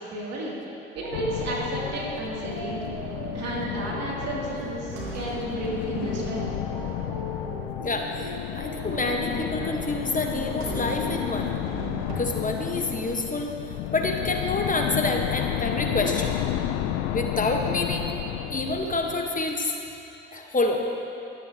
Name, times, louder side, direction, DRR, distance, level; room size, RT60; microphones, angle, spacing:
voice 1, 0.1-0.5 0.9-2.9 3.3-6.5, right 2 dB, 60° right, -4 dB, 3.0 m, -32 dB
sound 1, 1.0-12.2, right 1 dB, 75° right, 1.8 m, -38 dB
sound 2, 1.1-19.6, left 11 dB, 75° left, 0.6 m, -32 dB
voice 2, 7.8-11.5 12.1-13.5 13.9-16.3 17.1-18.1 18.5-19.7 20.3-20.8, left 2 dB, 25° left, 2 dB, 1.4 m, -27 dB
23.0 x 8.8 x 3.0 m, 2.8 s
hypercardioid pair, 45°, 29 cm